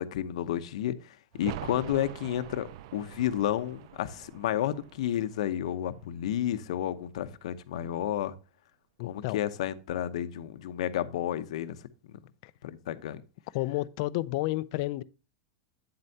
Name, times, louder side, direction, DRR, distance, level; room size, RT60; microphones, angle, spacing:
voice 1, 0.0-8.3 9.0-12.2 12.6-13.2, left 11 dB, 75° left, 0.8 m, -31 dB
sound 1, 1.3-6.9 7.2-7.3, right 13 dB, 55° right, 0.4 m, -45 dB
voice 2, 9.0-9.4 12.4-12.5 13.5-15.0, left 18 dB, 50° left, 0.4 m, -31 dB
8.9 x 7.8 x 2.7 m
supercardioid pair, 165°, 3 cm